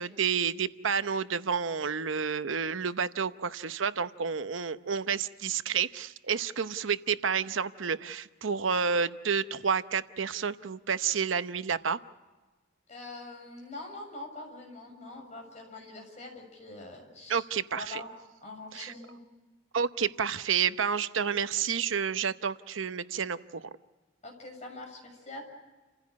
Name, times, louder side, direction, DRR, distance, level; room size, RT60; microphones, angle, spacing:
voice 1, 0.0-12.0 17.3-18.0 18.7-18.9 19.7-23.6, right 6 dB, 90° right, 12 dB, 0.8 m, -30 dB
voice 2, 12.9-17.5 17.7-18.1 18.4-19.2 24.2-25.4, left 2 dB, 40° left, 1 dB, 7.0 m, -44 dB
29.5 x 15.5 x 8.3 m, 1.3 s
head